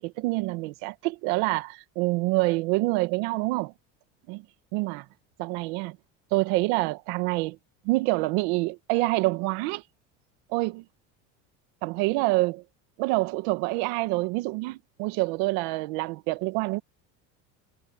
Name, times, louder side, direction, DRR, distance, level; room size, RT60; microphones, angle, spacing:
voice 1, 0.0-3.7 4.3-4.4 4.7-5.0 5.4-6.0 6.3-7.6 7.8-9.8 10.5-10.8 11.8-12.6 13.0-16.8, right 22 dB, 75° right, 1.6 m, -26 dB
supercardioid pair, 120°, 37 cm